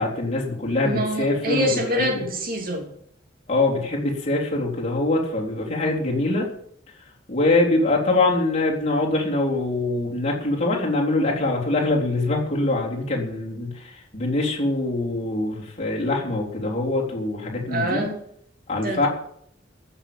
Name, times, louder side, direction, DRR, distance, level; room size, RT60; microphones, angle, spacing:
voice 1, 0.0-2.2 3.5-6.5 7.3-18.1 18.7-19.1, left 2 dB, 35° left, -2 dB, 3.7 m, -23 dB
voice 2, 0.8-2.9 17.7-18.2 18.8-19.1, equal, 50° right, 3 dB, 3.0 m, -25 dB
14.5 x 7.0 x 9.0 m, 0.67 s
head